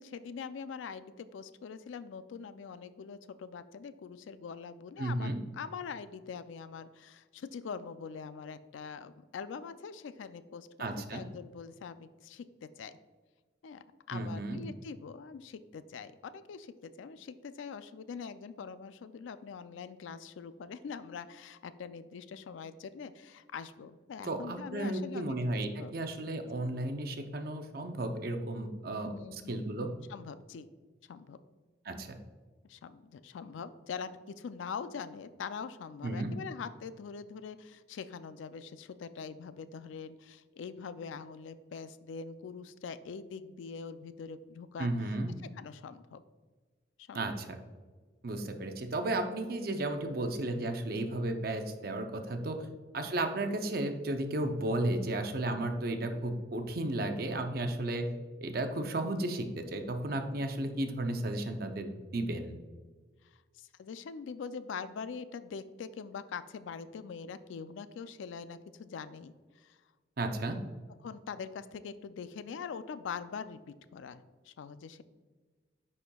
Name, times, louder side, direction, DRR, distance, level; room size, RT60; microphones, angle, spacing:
voice 1, 0.0-13.0 13.6-26.0 28.8-29.6 30.1-30.7 31.1-31.4 32.7-44.9 45.6-46.2 47.0-47.2 52.6-52.7 63.3-69.8 71.0-75.0, left 6 dB, 80° left, 13 dB, 0.3 m, -43 dB
voice 2, 5.0-5.4 10.8-11.2 14.1-14.6 24.2-29.9 31.9-32.2 36.0-36.3 44.8-45.3 47.1-47.6 48.2-52.7 52.9-58.1 58.4-62.5 70.2-70.6, right 1 dB, 50° right, 6 dB, 0.6 m, -34 dB
9.9 x 4.3 x 2.3 m, 1.4 s
head